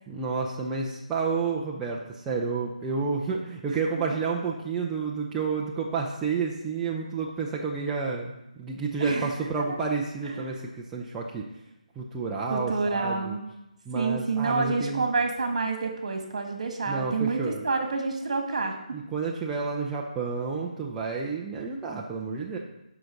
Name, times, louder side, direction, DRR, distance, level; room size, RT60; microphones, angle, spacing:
voice 1, 0.1-10.6 10.9-11.4 12.0-13.4 13.9-15.1 16.9-17.6 18.9-22.6, right 4 dB, 5° right, -3 dB, 0.5 m, -30 dB
voice 2, 9.0-9.8 10.2-10.5 12.5-13.4 13.9-19.0, right 4 dB, 50° right, 3 dB, 1.9 m, -28 dB
7.8 x 5.9 x 6.3 m, 0.90 s
hypercardioid pair, 170°, 4 cm